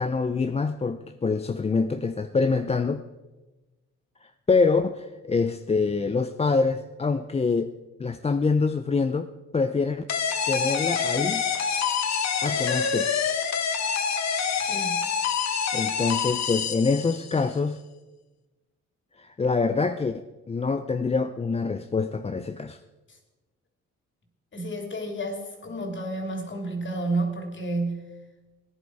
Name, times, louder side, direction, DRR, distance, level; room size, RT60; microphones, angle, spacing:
voice 1, 0.0-3.0 4.2-7.7 8.0-10.0 10.5-11.4 12.4-13.1 15.7-17.8 19.2-20.2 20.5-22.8, left 4 dB, 20° left, 9 dB, 0.5 m, -25 dB
sound 1, 10.1-17.4, left 6 dB, 60° left, 1.3 m, -26 dB
voice 2, 14.6-15.1 24.5-28.1, right 2 dB, 40° left, 3 dB, 3.2 m, -31 dB
18.0 x 10.5 x 4.8 m, 1.2 s
cardioid pair, 90°, 30 cm